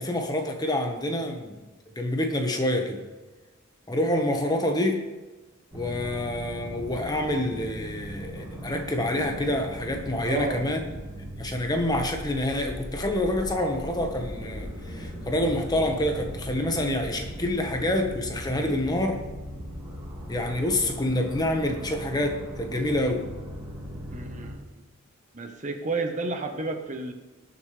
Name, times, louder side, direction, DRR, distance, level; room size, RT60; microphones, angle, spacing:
voice 1, 0.0-1.6 1.9-3.0 3.9-5.0 5.7-10.8 11.4-19.2 20.3-23.3, left 1 dB, 20° left, 4 dB, 1.4 m, -27 dB
sound 1, 5.7-24.5, equal, 15° right, 3.1 m, -39 dB
voice 2, 10.3-10.6 24.1-24.8 25.3-27.1, right 3 dB, 35° right, 5 dB, 1.2 m, -31 dB
19.5 x 7.3 x 3.4 m, 1.2 s
head